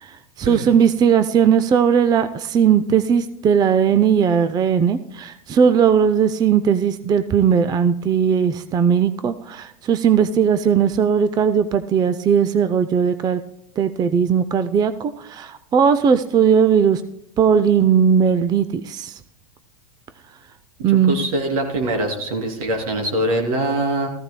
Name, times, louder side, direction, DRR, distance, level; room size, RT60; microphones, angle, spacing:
voice 1, 0.0-13.4 13.8-17.0 17.4-19.2 20.8-21.2, right 7 dB, 20° right, 12 dB, 0.5 m, -18 dB
voice 2, 21.1-24.1, right 1 dB, 75° right, 2 dB, 3.0 m, -23 dB
15.0 x 14.5 x 2.2 m, 0.76 s
hypercardioid pair, 110°, 18 cm